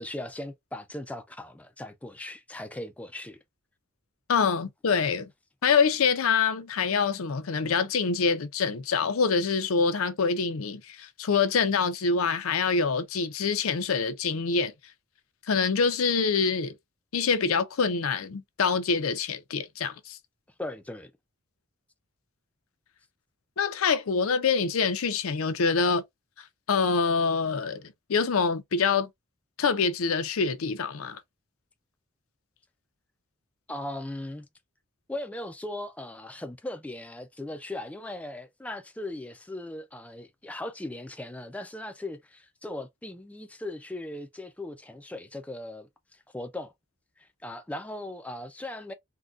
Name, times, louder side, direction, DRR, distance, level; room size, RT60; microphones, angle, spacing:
voice 1, 0.0-3.4 20.6-21.1 33.7-34.5 35.1-46.7 47.2-48.9, left 1 dB, 5° left, 0.3 m, -38 dB
voice 2, 4.3-5.3 5.6-14.7 15.5-16.7 17.1-20.2 23.6-26.0 26.7-29.1 29.6-31.2, left 5 dB, 80° left, 0.5 m, -25 dB
3.8 x 2.2 x 2.4 m
head